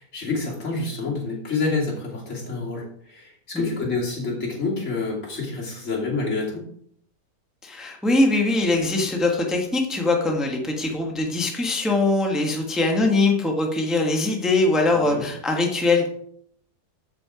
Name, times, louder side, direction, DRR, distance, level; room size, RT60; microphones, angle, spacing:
voice 1, 0.0-6.6 14.9-15.2, left 3 dB, 50° left, -4 dB, 3.2 m, -28 dB
voice 2, 7.6-16.1, left 2 dB, ahead, 1 dB, 1.3 m, -22 dB
14.0 x 5.7 x 4.9 m, 0.66 s
omnidirectional pair, 1.6 m